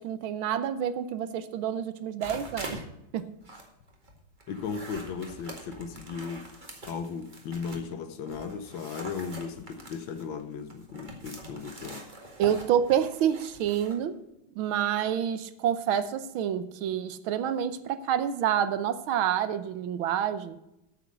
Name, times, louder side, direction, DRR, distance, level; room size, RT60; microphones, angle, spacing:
voice 1, 0.0-2.8 3.1-3.3 12.4-14.2 14.6-20.6, right 9 dB, 80° right, 13 dB, 1.6 m, -28 dB
sound 1, 2.2-2.8 3.2-7.9 8.3-14.0, right 1 dB, 25° right, 1.9 m, -44 dB
voice 2, 4.5-6.5 6.9-12.1, left 6 dB, 70° left, 9 dB, 1.7 m, -36 dB
8.9 x 7.8 x 7.8 m, 0.88 s
omnidirectional pair, 2.3 m